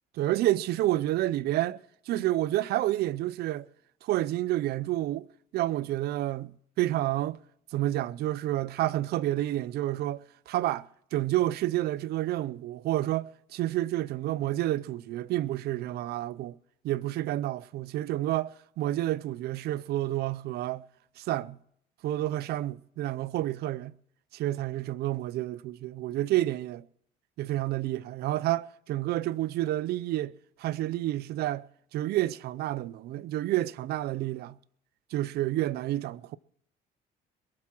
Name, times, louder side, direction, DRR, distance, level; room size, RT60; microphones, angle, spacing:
voice 1, 0.1-1.8 2.1-3.7 4.0-5.3 5.5-7.4 7.7-10.2 10.5-16.6 16.8-20.8 21.2-21.6 22.0-23.9 24.3-26.8 27.4-30.3 30.6-31.6 31.9-34.6 35.1-36.4, right 15 dB, 70° right, 0.5 m, -29 dB
21.5 x 7.7 x 6.0 m
cardioid pair, 110°, 17 cm